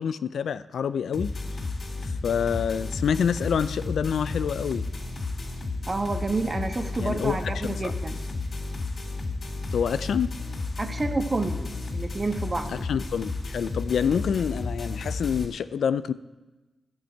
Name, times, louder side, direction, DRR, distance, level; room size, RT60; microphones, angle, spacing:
voice 1, 0.0-1.3 2.0-4.8 7.0-7.4 7.8-7.9 9.7-10.3 12.7-16.1, left 7 dB, 80° left, 14 dB, 0.4 m, -27 dB
sound 1, 1.1-15.4, left 3 dB, 50° left, 3.4 m, -32 dB
voice 2, 5.9-8.2 10.8-12.8, right 3 dB, 35° right, 6 dB, 1.3 m, -29 dB
11.5 x 7.3 x 9.0 m, 1.2 s
cardioid pair, 55°, 0 cm